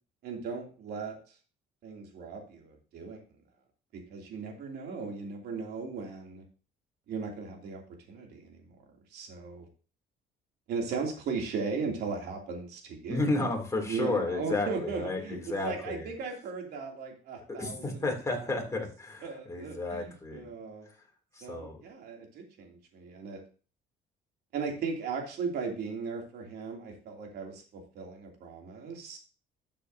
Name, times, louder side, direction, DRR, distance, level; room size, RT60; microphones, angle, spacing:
voice 1, 0.2-1.2 1.8-3.2 3.9-6.4 7.1-8.6 9.1-9.7 10.7-13.3 13.9-18.5 19.2-20.9 21.4-23.4 24.5-29.2, right 4 dB, 70° right, 1 dB, 2.9 m, -37 dB
voice 2, 13.1-16.1 17.6-20.5 21.3-21.8, left 2 dB, 20° left, 1 dB, 2.9 m, -32 dB
12.5 x 7.3 x 2.8 m, 0.37 s
cardioid pair, 110°, 17 cm